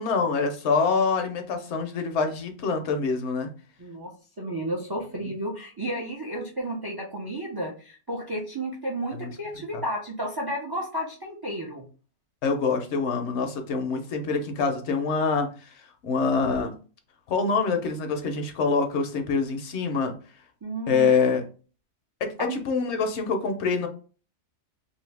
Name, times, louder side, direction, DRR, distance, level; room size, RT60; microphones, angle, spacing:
voice 1, 0.0-3.5 9.2-9.3 9.7-9.8 12.4-15.5 16.0-16.7 17.3-20.1 20.9-21.4 22.2-23.9, left 4 dB, 70° left, 6 dB, 0.9 m, -25 dB
voice 2, 3.8-4.1 4.4-11.8 20.6-21.1 22.4-22.6, right 1 dB, 40° right, -1 dB, 0.3 m, -32 dB
2.7 x 2.7 x 3.2 m, 0.38 s
omnidirectional pair, 1.2 m